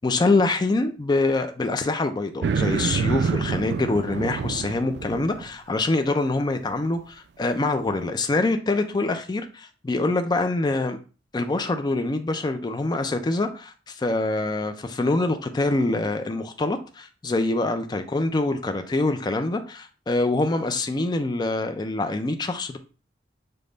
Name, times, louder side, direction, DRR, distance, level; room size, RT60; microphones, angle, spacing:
voice 1, 0.0-11.0 11.3-22.8, left 2 dB, 25° left, 0.4 m, -25 dB
sound 1, 2.4-5.5, right 5 dB, 65° right, 0.3 m, -26 dB
5.2 x 2.2 x 3.9 m
head